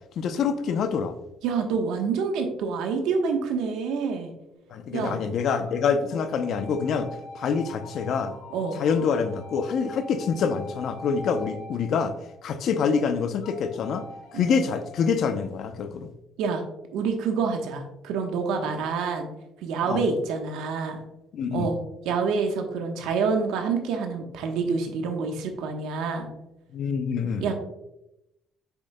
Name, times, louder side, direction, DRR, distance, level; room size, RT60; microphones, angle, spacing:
voice 1, 0.2-1.1 4.7-7.1 7.3-8.3 8.8-12.1 12.4-14.1 14.3-16.1 19.9-20.0 21.3-21.7 26.7-27.5, left 6 dB, 60° left, 10 dB, 0.7 m, -26 dB
voice 2, 1.4-4.3 4.9-5.2 8.5-8.8 14.3-14.6 16.4-16.6 16.9-19.3 19.6-21.0 21.5-21.8 22.0-26.3 27.4-27.5, right 5 dB, 90° right, 4 dB, 1.2 m, -27 dB
sound 1, 4.6-5.1 5.6-12.7 13.4-15.2, left 2 dB, 90° left, 2.4 m, -44 dB
8.0 x 6.4 x 2.3 m, 0.88 s
cardioid pair, 115°, 0 cm